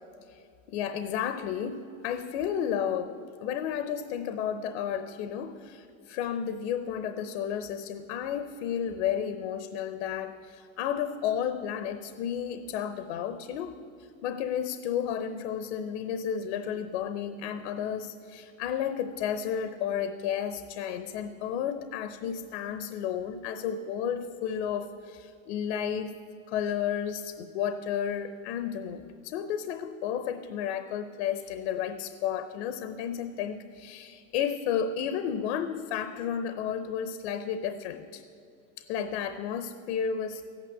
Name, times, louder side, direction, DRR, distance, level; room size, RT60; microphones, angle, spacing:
voice 1, 0.7-13.8 14.2-26.1 26.5-38.2 38.8-40.4, left 8 dB, 55° left, 11 dB, 0.9 m, -32 dB
14.5 x 9.2 x 9.2 m, 2.5 s
supercardioid pair, 160°, 40 cm